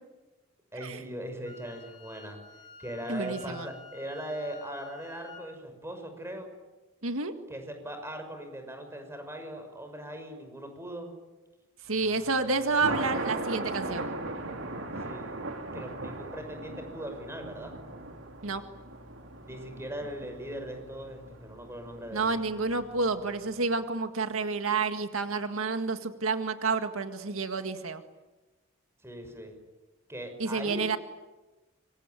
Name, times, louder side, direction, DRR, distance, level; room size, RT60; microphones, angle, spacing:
voice 1, 0.7-2.4 2.8-6.5 7.5-11.1 15.1-15.4 15.7-17.8 19.4-22.3 29.0-29.6 30.1-30.8, right 1 dB, 15° right, 6 dB, 6.1 m, -40 dB
Wind instrument woodwind instrument, 1.4-5.4, left 4 dB, 20° left, 6.1 m, -50 dB
voice 2, 3.1-3.7 7.0-7.3 11.9-14.1 18.4-18.6 22.1-28.0 30.4-31.0, right 4 dB, 85° right, 7 dB, 1.9 m, -29 dB
Thunder, 12.0-23.3, right 2 dB, 65° right, 3.2 m, -39 dB
26.0 x 24.5 x 9.3 m, 1.1 s
head